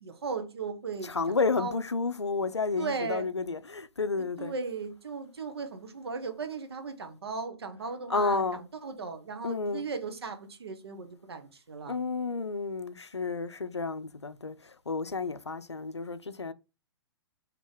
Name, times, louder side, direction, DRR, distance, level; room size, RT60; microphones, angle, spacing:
voice 1, 0.0-1.1 1.6-1.8 2.8-3.3 4.4-12.0, right 4 dB, 70° right, 0.8 m, -37 dB
voice 2, 1.0-4.5 8.1-8.6 9.4-9.9 11.9-16.5, left 4 dB, 90° left, 0.4 m, -31 dB
4.1 x 2.8 x 3.2 m
figure-of-eight pair, 115°, 14 cm